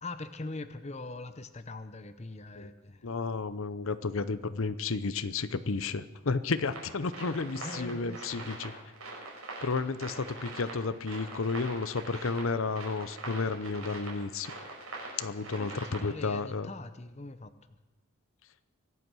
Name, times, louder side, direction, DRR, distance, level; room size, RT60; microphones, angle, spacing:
voice 1, 0.0-3.1 7.6-8.5 15.5-17.5, left 2 dB, 30° left, 10 dB, 0.8 m, -42 dB
voice 2, 3.0-8.7 9.6-14.5 15.2-16.7, left 4 dB, 70° left, 13 dB, 0.7 m, -32 dB
sound 1, 6.7-16.4, right 2 dB, 75° right, 5.6 m, -43 dB
24.0 x 8.4 x 6.3 m, 1.2 s
head